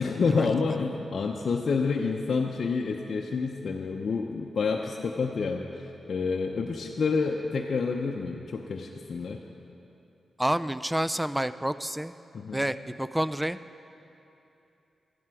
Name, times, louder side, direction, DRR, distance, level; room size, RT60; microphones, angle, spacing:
voice 1, 0.0-9.4 12.3-12.7, left 4 dB, 65° left, 1 dB, 0.7 m, -28 dB
voice 2, 10.4-12.1 12.5-13.6, right 1 dB, 10° right, 14 dB, 0.4 m, -29 dB
13.5 x 11.0 x 4.8 m, 2.8 s
cardioid pair, 50°, 0 cm